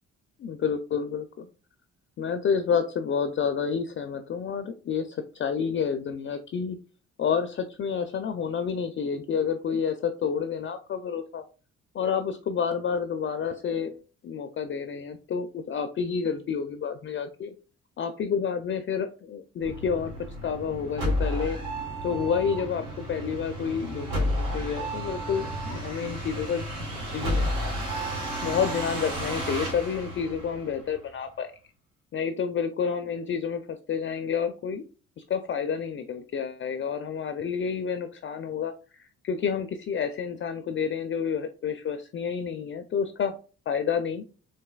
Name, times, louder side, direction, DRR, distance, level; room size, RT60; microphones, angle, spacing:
voice 1, 0.4-1.5 2.2-6.8 7.2-11.4 11.9-17.5 18.0-20.1 20.4-21.6 22.0-27.7 28.4-31.5 32.1-34.8 35.2-43.4 43.7-44.2, left 6 dB, 40° left, 8 dB, 0.4 m, -29 dB
sound 1, 19.6-31.1, equal, 80° right, 1.5 m, -32 dB
3.9 x 2.6 x 2.2 m, 0.35 s
cardioid pair, 90°, 30 cm